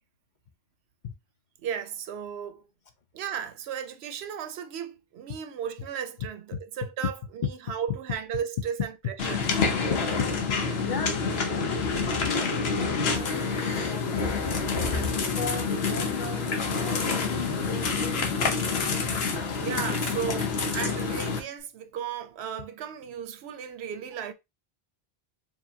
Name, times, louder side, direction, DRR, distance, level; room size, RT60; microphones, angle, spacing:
voice 1, 1.6-2.7 3.1-9.5 10.7-11.1 14.8-15.2 19.3-24.3, right 8 dB, 80° right, 0.8 m, -35 dB
sound 1, 9.2-21.4, left 4 dB, 75° left, 1.1 m, -27 dB
voice 2, 10.8-14.4 15.4-18.9, left 6 dB, 55° left, 0.6 m, -38 dB
4.7 x 2.9 x 2.7 m
omnidirectional pair, 1.1 m